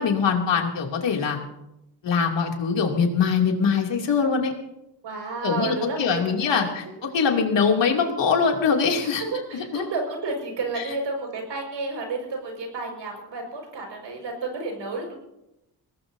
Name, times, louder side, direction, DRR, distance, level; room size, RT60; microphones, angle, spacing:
voice 1, 0.0-1.4 2.0-4.5 5.4-6.8 7.1-9.2 9.7-9.8 10.8-10.9, left 5 dB, 90° left, 1 dB, 2.9 m, -22 dB
voice 2, 5.0-7.0 9.2-15.1, right 3 dB, 90° right, 2 dB, 5.6 m, -31 dB
23.5 x 18.5 x 2.8 m, 0.87 s
wide cardioid pair, 105°, 42 cm